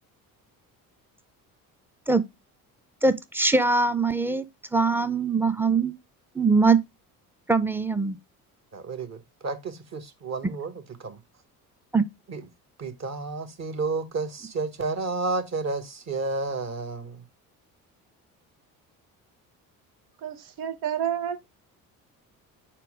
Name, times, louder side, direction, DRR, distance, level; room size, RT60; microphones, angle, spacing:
voice 1, 3.0-4.4 4.7-5.9 6.4-6.8 7.5-8.2 11.9-12.0, right 4 dB, 5° right, 0.5 m, -22 dB
voice 2, 8.7-11.2 12.3-12.5 12.8-17.2, right 3 dB, 35° right, 1.3 m, -31 dB
voice 3, 20.2-21.5, right 9 dB, 80° right, 0.9 m, -30 dB
4.5 x 4.4 x 4.9 m
hypercardioid pair, 55°, 43 cm